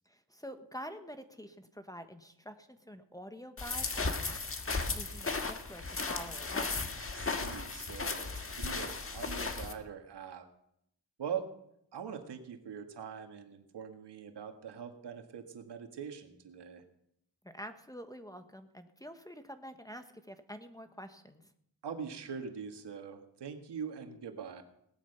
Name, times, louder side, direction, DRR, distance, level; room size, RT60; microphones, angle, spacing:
voice 1, 0.1-4.4 4.9-6.8 17.4-21.5, equal, 10° left, 8 dB, 1.2 m, -47 dB
sound 1, 3.6-9.7, left 3 dB, 30° left, 1.6 m, -35 dB
voice 2, 7.0-10.5 11.2-11.5 11.9-16.8 21.8-24.6, right 7 dB, 70° right, 5 dB, 2.1 m, -43 dB
18.0 x 11.5 x 5.7 m, 0.75 s
cardioid pair, 90°, 43 cm